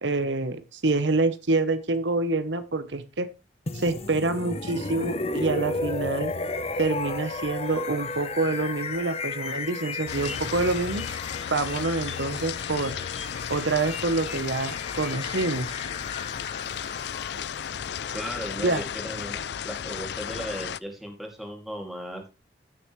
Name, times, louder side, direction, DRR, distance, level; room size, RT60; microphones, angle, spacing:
voice 1, 0.0-3.3 3.7-6.3 6.8-11.0 11.5-13.0 13.5-15.8 18.6-18.8, right 3 dB, 75° right, 11 dB, 1.0 m, -26 dB
sound 1, 3.7-19.5, left 3 dB, 35° left, 0.8 m, -35 dB
sound 2, 10.1-20.8, left 8 dB, 60° left, 0.4 m, -34 dB
voice 2, 18.1-22.2, equal, ahead, 1 dB, 2.5 m, -36 dB
15.5 x 6.8 x 3.2 m, 0.29 s
head